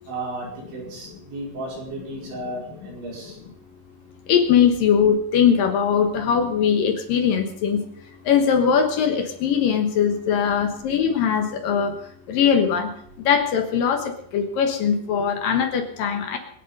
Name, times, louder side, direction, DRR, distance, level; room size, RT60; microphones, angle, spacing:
voice 1, 0.1-3.4, right 2 dB, 70° right, -3 dB, 7.2 m, -34 dB
voice 2, 4.3-7.8 8.3-11.9 12.3-12.9 13.3-16.4, left 7 dB, 70° left, 5 dB, 2.2 m, -20 dB
25.0 x 8.4 x 5.4 m, 0.65 s
omnidirectional pair, 5.6 m